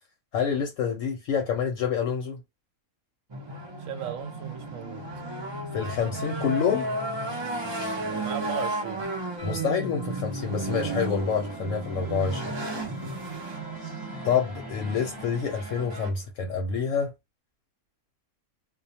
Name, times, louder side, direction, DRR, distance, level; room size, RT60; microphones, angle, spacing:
voice 1, 0.3-2.4 5.7-6.9 9.4-12.6 14.2-17.1, left 6 dB, 70° left, 0.9 m, -27 dB
sound 1, 3.3-16.1, right 2 dB, 45° right, 0.3 m, -33 dB
voice 2, 3.9-5.1 8.0-9.1, right 8 dB, 70° right, 0.9 m, -37 dB
sound 2, 9.4-16.3, left 1 dB, 25° left, 0.7 m, -48 dB
2.3 x 2.2 x 2.7 m
omnidirectional pair, 1.5 m